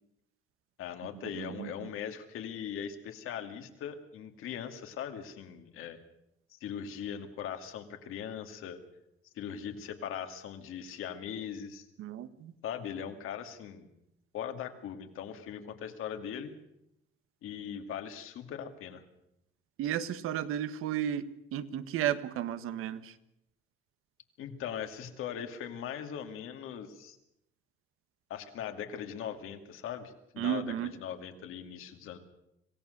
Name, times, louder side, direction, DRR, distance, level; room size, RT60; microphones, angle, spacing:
voice 1, 0.8-6.0 6.5-8.8 9.3-11.9 12.6-13.9 14.3-16.5 17.4-19.0 24.4-27.2 28.3-32.2, left 8 dB, 80° left, 6 dB, 2.5 m, -40 dB
voice 2, 1.3-1.9 12.0-12.5 19.8-23.1 30.4-30.9, right 10 dB, 85° right, 13 dB, 1.4 m, -33 dB
26.0 x 17.5 x 6.7 m, 0.82 s
cardioid pair, 160°, 21 cm